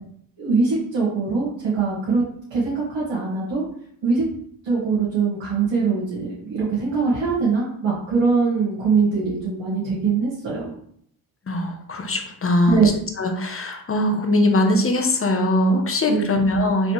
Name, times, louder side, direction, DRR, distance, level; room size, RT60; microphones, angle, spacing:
voice 1, 0.4-2.2 2.5-3.6 4.0-4.2 4.6-10.7 12.6-12.9 16.1-16.4, right 4 dB, 70° right, -7 dB, 1.6 m, -22 dB
voice 2, 11.5-12.8 13.2-16.9, left 1 dB, 25° left, 4 dB, 0.9 m, -21 dB
4.1 x 3.2 x 3.2 m, 0.66 s
supercardioid pair, 65°, 48 cm